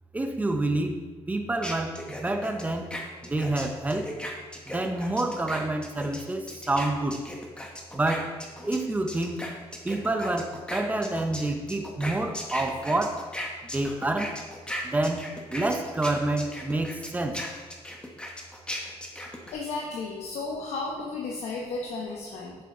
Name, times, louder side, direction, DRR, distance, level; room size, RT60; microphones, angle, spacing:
voice 1, 0.1-1.0 1.3-2.9 3.2-4.1 4.7-7.2 7.9-8.4 8.6-9.4 9.8-13.3 13.7-14.3 14.8-17.4, right 2 dB, 15° right, 5 dB, 0.7 m, -28 dB
sound 1, 1.6-8.8 9.1-19.5, left 1 dB, 10° left, 1.1 m, -37 dB
voice 2, 19.5-22.6, left 3 dB, 75° left, -1 dB, 1.0 m, -33 dB
8.1 x 6.9 x 3.8 m, 1.4 s
cardioid pair, 135°, 11 cm